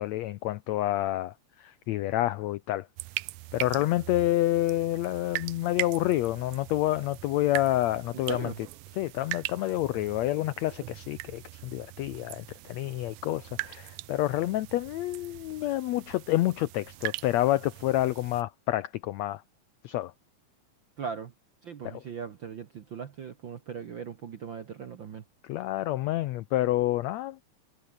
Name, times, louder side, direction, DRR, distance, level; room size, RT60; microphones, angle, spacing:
voice 1, 0.0-2.9 3.5-8.5 9.0-19.4 19.8-20.1 21.8-22.0 25.4-27.4, left 15 dB, 85° left, 1.5 m, -28 dB
sound 1, 3.0-18.4, right 19 dB, 75° right, 2.0 m, -41 dB
voice 2, 8.3-8.6 21.0-21.3 21.6-25.2, right 6 dB, 60° right, 1.3 m, -39 dB
omnidirectional pair, 3.9 m